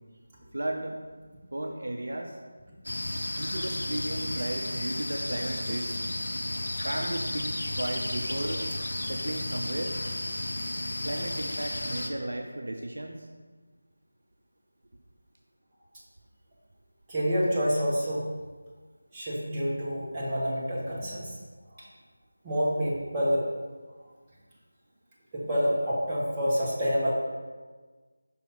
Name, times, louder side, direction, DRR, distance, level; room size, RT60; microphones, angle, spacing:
voice 1, 0.5-1.0 1.5-2.4 3.3-6.4 6.8-8.6 9.1-10.0 11.0-13.3, right 1 dB, 60° right, 2 dB, 0.6 m, -34 dB
sound 1, 2.8-12.1, left 1 dB, 55° left, 0.7 m, -33 dB
voice 2, 17.1-18.3 19.1-21.4 21.7-21.9 22.4-23.5 25.3-27.1, equal, 15° right, -8 dB, 1.2 m, -28 dB
5.6 x 5.2 x 4.0 m, 1.4 s
figure-of-eight pair, 165°, 0 cm